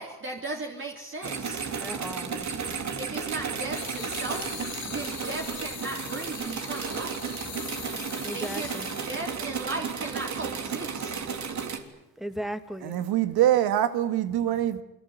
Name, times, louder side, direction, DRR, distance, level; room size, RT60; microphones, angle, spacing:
voice 1, 0.0-1.6 3.0-7.4 8.3-11.2, right 2 dB, 30° right, 3.3 m, -37 dB
sound 1, 1.2-11.8, right 6 dB, 45° right, 3.3 m, -33 dB
voice 2, 1.8-2.8 4.8-5.0 8.2-8.9 12.2-13.0, equal, ahead, 2.2 m, -37 dB
sound 2, 3.8-9.5, left 10 dB, 65° left, 3.7 m, -41 dB
voice 3, 12.8-14.8, right 12 dB, 80° right, 1.9 m, -24 dB
27.5 x 22.5 x 8.2 m
cardioid pair, 85°, 38 cm